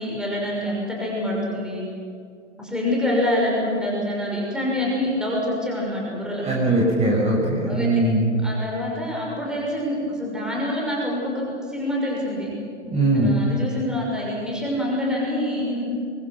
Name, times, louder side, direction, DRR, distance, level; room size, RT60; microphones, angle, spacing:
voice 1, 0.0-1.8 2.6-6.5 7.7-7.9 8.4-12.5 13.1-15.8, left 1 dB, ahead, -4 dB, 6.1 m, -26 dB
voice 2, 6.4-8.3 12.8-13.4, right 1 dB, 15° right, -3 dB, 5.8 m, -20 dB
24.0 x 24.0 x 6.1 m, 2.3 s
figure-of-eight pair, 105°, 36 cm